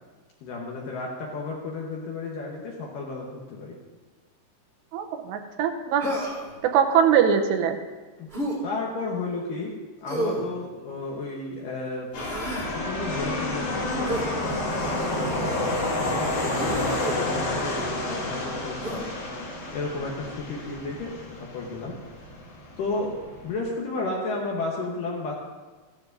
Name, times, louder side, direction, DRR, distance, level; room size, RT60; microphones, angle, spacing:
voice 1, 0.4-3.8 8.2-8.3 8.6-12.1 12.7-15.8 16.2-19.1 19.7-22.0 22.8-25.3, left 3 dB, 70° left, -2 dB, 2.2 m, -33 dB
voice 2, 4.9-6.1 6.6-7.8, right 8 dB, 85° right, 6 dB, 2.9 m, -22 dB
Human voice, 6.0-6.5 8.3-8.6 10.1-10.5 12.1-12.7 14.0-14.3 15.2-15.5 16.5-17.2 18.8-19.0, right 1 dB, 30° right, 1.2 m, -31 dB
sound 1, 12.1-23.6, left 2 dB, 55° left, 2.9 m, -30 dB
15.0 x 12.0 x 2.6 m, 1.3 s
omnidirectional pair, 5.1 m